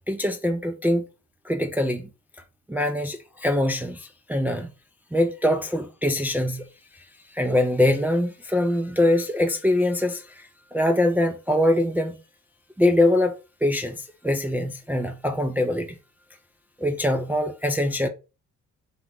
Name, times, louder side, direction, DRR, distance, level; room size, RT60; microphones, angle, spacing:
voice 1, 0.1-1.1 1.4-2.1 2.7-4.7 5.1-6.7 6.9-12.2 12.8-16.0 16.8-18.1, left 1 dB, 5° right, 0.4 m, -23 dB
3.5 x 2.9 x 3.6 m
cardioid pair, 90°, 30 cm